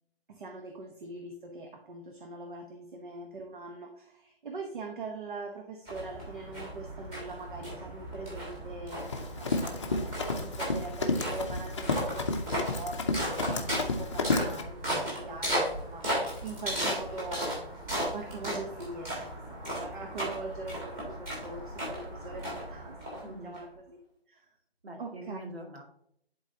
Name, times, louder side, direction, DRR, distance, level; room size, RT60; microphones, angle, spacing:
voice 1, 0.3-24.0 24.3-24.5 25.0-25.4, right 3 dB, 55° right, 3 dB, 1.1 m, -42 dB
sound 1, 5.9-23.6, equal, 10° right, 1.5 m, -36 dB
Run, 8.9-14.6, left 3 dB, 30° left, 0.7 m, -31 dB
voice 2, 23.2-23.5 24.8-25.8, right 1 dB, 75° right, 1 dB, 2.3 m, -43 dB
11.0 x 4.0 x 2.8 m, 0.70 s
hypercardioid pair, 165°, 31 cm